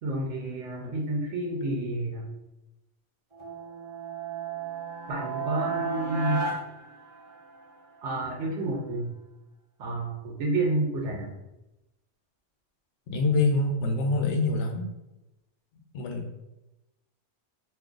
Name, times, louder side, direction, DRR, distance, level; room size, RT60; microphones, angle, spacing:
voice 1, 0.0-2.3 5.1-6.4 8.0-9.1 9.8-11.3, right 2 dB, 85° right, -1 dB, 0.9 m, -30 dB
sound 1, 3.3-7.7, right 5 dB, 35° right, 0.5 m, -34 dB
voice 2, 13.1-14.9 15.9-16.3, left 3 dB, 80° left, 3 dB, 0.9 m, -25 dB
2.6 x 2.4 x 3.6 m, 0.98 s
omnidirectional pair, 1.2 m